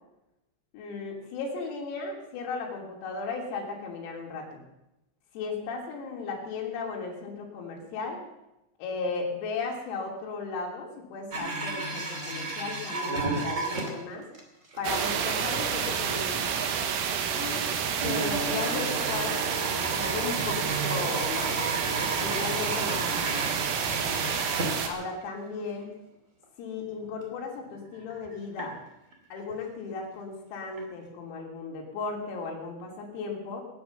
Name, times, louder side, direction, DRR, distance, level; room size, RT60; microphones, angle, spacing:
voice 1, 0.7-4.6 5.4-8.2 8.8-14.3 14.8-16.6 17.3-17.7 18.0-21.6 22.2-24.3 24.8-26.0 26.6-28.8 29.3-33.6, left 4 dB, 85° left, -1 dB, 5.8 m, -36 dB
sound 1, 11.3-14.4 14.7-14.8 15.2-15.3 16.1-16.2 18.0-25.3 25.6-25.7 26.4-26.5 27.0-27.2 27.7-28.6 29.1-29.5 30.8-30.9 31.1-31.2, right 2 dB, 30° right, 1.4 m, -33 dB
sound 2, 14.8-24.9, right 7 dB, 85° right, 4.2 m, -29 dB
19.5 x 9.7 x 7.0 m, 0.90 s
omnidirectional pair, 6.0 m